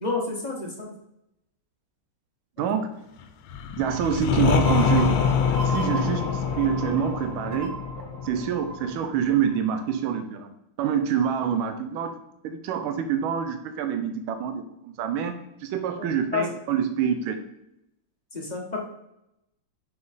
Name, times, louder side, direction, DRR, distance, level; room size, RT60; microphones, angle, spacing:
voice 1, 0.0-0.9 2.6-2.7 6.1-6.2 16.3-16.5 18.3-18.8, left 4 dB, 35° left, -2 dB, 0.8 m, -29 dB
voice 2, 2.6-2.9 3.8-5.2 5.6-7.8 8.2-10.5 10.8-12.1 12.4-17.4, right 8 dB, 85° right, 8 dB, 1.4 m, -26 dB
sound 1, 3.5-9.2, left 7 dB, 80° left, 1.4 m, -25 dB
sound 2, 4.5-10.0, right 2 dB, 50° right, 0.6 m, -37 dB
5.6 x 4.3 x 4.0 m, 0.84 s
omnidirectional pair, 2.2 m